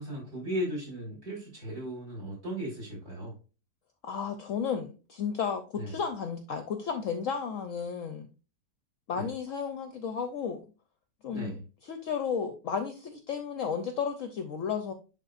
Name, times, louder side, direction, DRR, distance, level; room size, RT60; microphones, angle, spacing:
voice 1, 0.0-3.3 5.7-5.9 9.1-9.3 11.3-11.6, equal, 40° right, -3 dB, 3.6 m, -36 dB
voice 2, 4.0-8.3 9.1-10.6 11.2-14.9, left 6 dB, 65° left, 8 dB, 0.9 m, -33 dB
10.5 x 3.9 x 2.5 m, 0.33 s
omnidirectional pair, 1.7 m